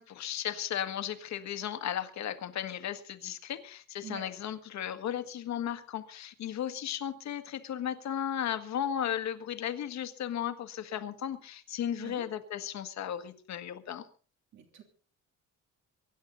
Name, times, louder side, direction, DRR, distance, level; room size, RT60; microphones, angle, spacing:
voice 1, 0.0-14.1, left 10 dB, 60° left, 9 dB, 1.7 m, -35 dB
voice 2, 14.5-14.8, right 10 dB, 65° right, 4 dB, 3.1 m, -45 dB
24.0 x 11.0 x 4.0 m, 0.41 s
cardioid pair, 160°, 31 cm